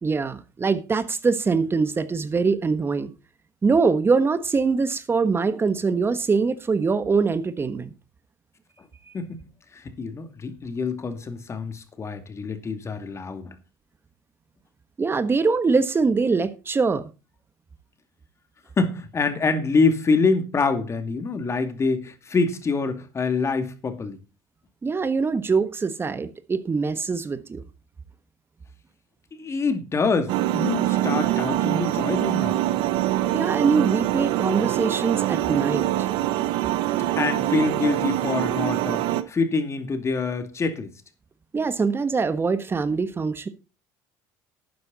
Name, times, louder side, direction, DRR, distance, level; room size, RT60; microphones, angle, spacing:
voice 1, 0.0-3.1 3.6-7.9 15.0-17.1 24.8-27.6 33.3-36.1 41.5-43.5, right 4 dB, 25° right, 1.4 m, -23 dB
voice 2, 9.7-13.5 18.8-24.2 29.3-32.6 37.2-40.9, left 4 dB, 30° left, 2.4 m, -25 dB
sound 1, 30.3-39.2, right 14 dB, 70° right, 1.1 m, -24 dB
12.0 x 9.5 x 4.1 m
supercardioid pair, 90°, 9 cm